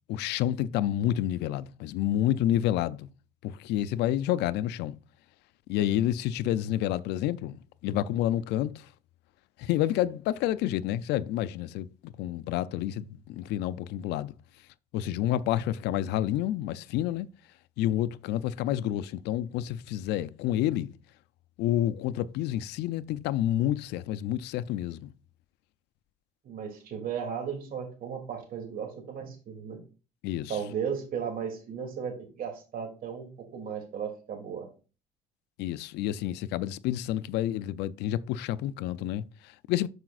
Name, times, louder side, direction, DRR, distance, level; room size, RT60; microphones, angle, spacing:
voice 1, 0.1-3.1 3.4-4.9 5.7-8.9 9.6-14.3 14.9-17.3 17.8-20.9 21.6-25.1 30.2-30.6 35.6-39.9, left 12 dB, 85° left, 0.4 m, -29 dB
voice 2, 26.4-29.8 30.5-34.7, right 7 dB, 60° right, 2.6 m, -35 dB
12.0 x 4.9 x 2.4 m
cardioid pair, 110°, 17 cm